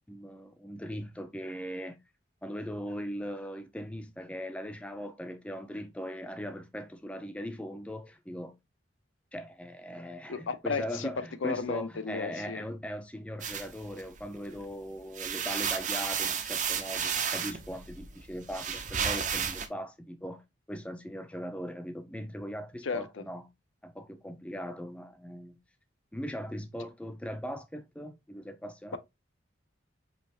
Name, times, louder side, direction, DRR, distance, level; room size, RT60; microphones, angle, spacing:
voice 1, 0.0-2.0 2.4-8.5 9.3-20.4 20.7-23.5 23.8-25.6 26.1-29.0, equal, 5° left, 0.4 m, -39 dB
voice 2, 10.3-11.1 11.4-12.6 22.8-23.2, left 4 dB, 90° left, 0.6 m, -34 dB
sound 1, 13.4-14.6 15.0-19.7, right 7 dB, 40° right, 0.6 m, -33 dB
5.2 x 2.8 x 2.8 m
head